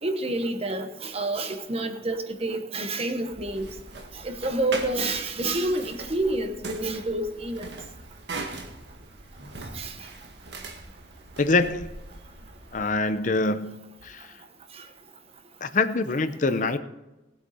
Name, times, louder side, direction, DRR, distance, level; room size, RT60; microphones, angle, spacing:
voice 1, 0.0-3.7 4.2-7.7 9.7-9.9, right 2 dB, 35° right, 1.1 m, -28 dB
sound 1, 3.3-13.0, right 2 dB, 70° right, 1.7 m, -40 dB
voice 2, 11.4-11.9 12.7-13.8 14.0-14.3 15.6-16.8, left 3 dB, 45° left, 0.6 m, -24 dB
18.5 x 8.1 x 4.3 m
head